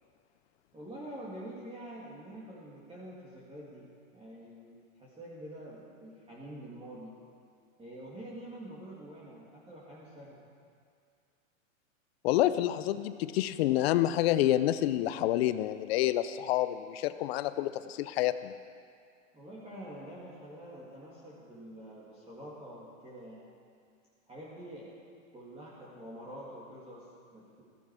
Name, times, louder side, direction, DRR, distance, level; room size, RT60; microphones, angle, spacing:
voice 1, 0.7-7.1 7.8-10.4 19.3-23.5 24.3-25.0 25.3-27.6, right 1 dB, 15° right, -7 dB, 2.7 m, -46 dB
voice 2, 12.2-18.5, left 13 dB, 50° left, 13 dB, 0.7 m, -28 dB
15.0 x 14.5 x 5.0 m, 2.2 s
hypercardioid pair, 125°, 40 cm